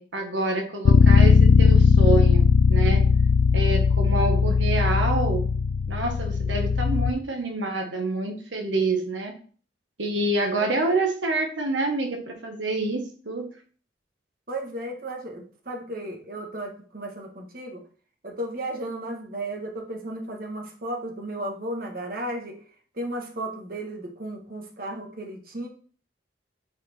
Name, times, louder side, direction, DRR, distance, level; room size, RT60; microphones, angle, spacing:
voice 1, 0.0-3.0 3.5-5.4 5.9-9.3 10.0-13.5, right 2 dB, 85° right, 3 dB, 1.3 m, -27 dB
Bass guitar, 0.9-7.1, left 5 dB, 85° left, 0.4 m, -18 dB
voice 2, 14.5-17.8 18.2-22.6 22.9-25.7, right 1 dB, 50° right, 2 dB, 1.5 m, -34 dB
9.4 x 4.4 x 4.3 m, 0.43 s
head